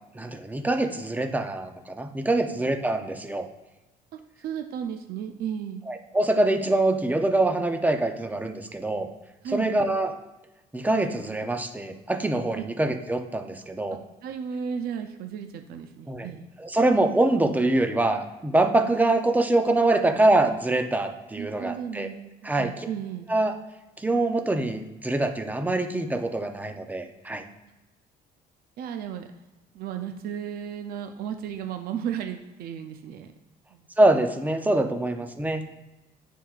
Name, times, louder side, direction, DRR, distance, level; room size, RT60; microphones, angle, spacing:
voice 1, 0.1-3.5 5.9-9.1 9.5-10.1 10.7-14.0 16.1-16.3 16.6-22.1 22.4-22.9 23.3-23.5 24.0-27.4 34.0-35.6, right 2 dB, 10° right, 6 dB, 0.6 m, -24 dB
voice 2, 4.4-5.8 9.4-9.7 12.6-12.7 14.2-16.5 19.9-20.0 21.4-23.3 28.8-29.3 29.7-33.3 33.7-33.8, right 8 dB, 65° right, 7 dB, 0.5 m, -34 dB
9.9 x 4.6 x 2.4 m, 1.0 s
cardioid pair, 110°, 17 cm